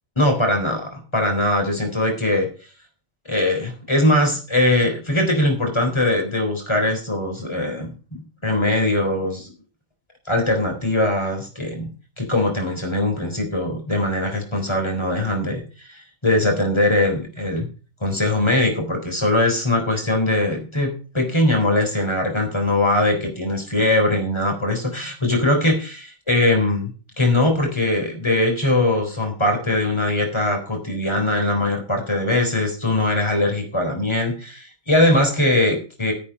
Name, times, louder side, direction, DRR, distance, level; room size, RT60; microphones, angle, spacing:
voice 1, 0.2-2.5 3.3-9.5 10.3-11.9 12.2-17.7 18.0-36.1, left 1 dB, 20° left, 2 dB, 4.0 m, -21 dB
10.5 x 8.5 x 5.3 m, 0.36 s
omnidirectional pair, 1.4 m